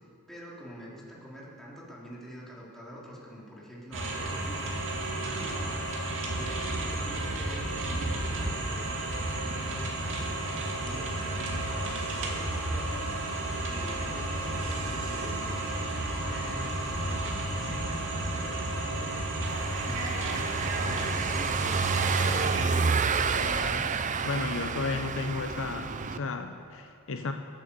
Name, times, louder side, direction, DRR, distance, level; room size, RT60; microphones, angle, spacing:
voice 1, 0.3-5.9 6.3-8.9 9.3-10.5 10.8-13.2 13.6-20.1 20.5-22.6, equal, ahead, -6 dB, 3.6 m, -45 dB
sound 1, 3.9-22.6, right 1 dB, 60° right, 2.5 m, -32 dB
Car passing by / Engine, 19.5-26.2, right 5 dB, 35° right, 0.6 m, -29 dB
voice 2, 23.3-23.9 24.2-27.3, left 4 dB, 65° left, 6 dB, 0.8 m, -34 dB
22.5 x 9.1 x 7.1 m, 2.3 s
head